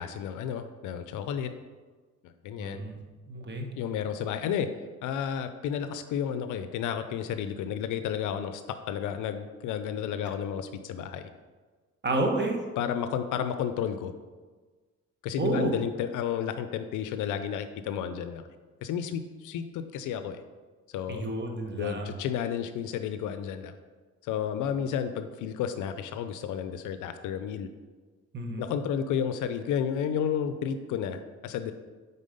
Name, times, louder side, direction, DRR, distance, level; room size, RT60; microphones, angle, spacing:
voice 1, 0.0-1.5 2.2-2.8 3.8-4.7 5.0-11.3 12.8-14.1 15.2-18.4 18.8-20.4 20.9-21.3 21.8-23.7 24.2-27.7 28.6-31.7, left 8 dB, 80° left, 9 dB, 0.5 m, -32 dB
voice 2, 2.6-3.0 3.3-3.7 12.0-12.6 15.4-15.7 21.1-22.1 28.3-28.7, right 2 dB, 35° right, 3 dB, 1.1 m, -30 dB
5.4 x 4.0 x 5.1 m, 1.4 s
cardioid pair, 90°, 30 cm